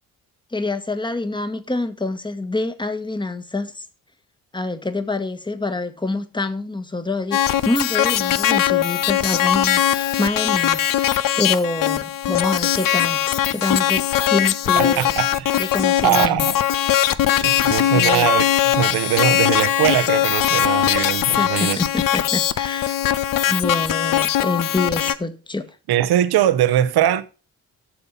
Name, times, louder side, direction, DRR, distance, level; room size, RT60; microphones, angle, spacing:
voice 1, 0.5-3.8 4.5-15.1 15.6-16.5 17.9-18.3 21.4-23.0 23.5-25.7, left 2 dB, 10° left, 1.4 m, -26 dB
sound 1, 7.3-25.2, left 11 dB, 50° left, 0.9 m, -20 dB
voice 2, 14.8-15.6 16.0-16.6 17.4-21.8 25.9-27.2, right 11 dB, 60° right, 1.1 m, -21 dB
11.5 x 6.8 x 5.5 m
hypercardioid pair, 45°, 43 cm